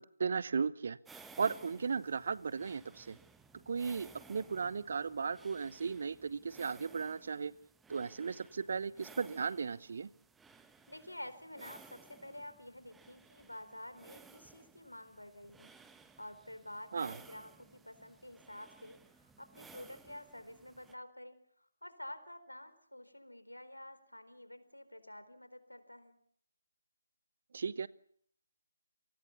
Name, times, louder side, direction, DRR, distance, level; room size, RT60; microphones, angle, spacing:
voice 1, 0.0-3.2 3.7-7.5 7.9-10.1 16.9-17.1 27.5-27.9, right 5 dB, 50° right, 19 dB, 0.9 m, -36 dB
sound 1, 1.1-20.9, right 4 dB, 5° right, 1.3 m, -59 dB
voice 2, 10.9-15.7 16.2-26.2, left 1 dB, 85° left, 12 dB, 4.1 m, -50 dB
29.0 x 19.5 x 7.1 m, 0.66 s
figure-of-eight pair, 150°, 0 cm